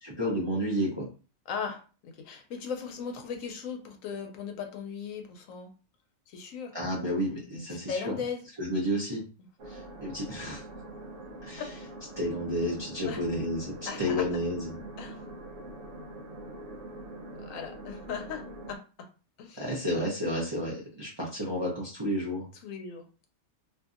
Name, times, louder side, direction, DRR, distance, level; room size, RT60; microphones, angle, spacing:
voice 1, 0.0-1.1 6.7-8.2 8.6-9.2 9.7-10.6 11.4-11.6 12.2-14.8 19.5-22.5, equal, 30° right, -5 dB, 0.5 m, -31 dB
voice 2, 1.5-5.7 6.3-6.7 7.5-8.4 13.1-13.2 13.8-14.2 15.0-15.2 17.4-19.1 19.4-19.6 22.6-23.1, left 6 dB, 85° left, 5 dB, 1.0 m, -38 dB
sound 1, 9.6-18.8, right 1 dB, 70° right, 0.9 m, -44 dB
2.6 x 2.6 x 2.4 m, 0.35 s
omnidirectional pair, 1.4 m